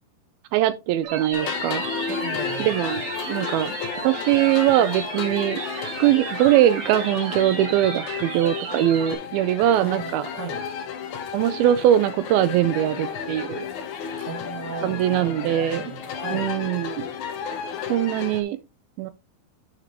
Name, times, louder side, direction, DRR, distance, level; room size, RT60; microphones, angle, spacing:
voice 1, 0.5-1.8 2.6-3.0 3.3-3.8 4.0-5.6 6.0-10.3 11.3-13.7 14.8-15.8 16.3-17.1 17.9-18.6 19.0-19.1, right 12 dB, 80° right, 2.4 m, -21 dB
sound 1, 1.0-9.1, right 5 dB, 60° right, 3.6 m, -34 dB
sound 2, 1.3-18.4, left 7 dB, 65° left, 2.2 m, -33 dB
voice 2, 2.1-2.8 9.8-10.6 14.2-16.5, right 5 dB, 35° right, 1.9 m, -36 dB
11.0 x 5.9 x 2.9 m
omnidirectional pair, 4.4 m